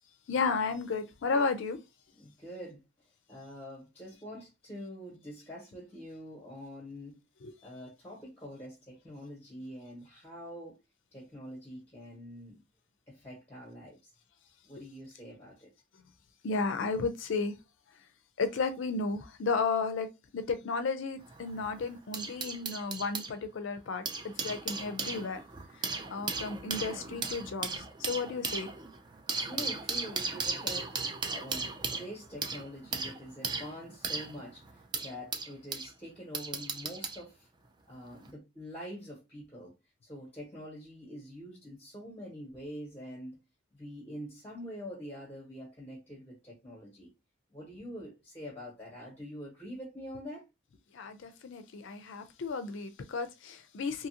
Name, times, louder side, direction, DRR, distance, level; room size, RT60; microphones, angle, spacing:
voice 1, 0.3-1.8 7.4-7.5 14.8-14.9 16.4-17.5 17.9-18.0 18.4-20.1 20.3-24.1 24.4-25.4 25.7-28.7 50.9-54.1, left 4 dB, 70° left, 0.4 m, -33 dB
voice 2, 2.2-2.8 3.3-7.2 7.6-10.8 11.1-12.6 13.1-14.1 14.6-15.7 29.4-30.9 31.3-34.6 35.0-37.5 37.9-39.8 40.0-43.4 43.7-47.1 47.5-50.4, equal, 10° left, 1.1 m, -45 dB
sound 1, 21.2-23.3 23.9-35.9 36.3-37.2 38.1-38.3, right 4 dB, 20° right, 0.3 m, -36 dB
2.8 x 2.5 x 2.7 m
head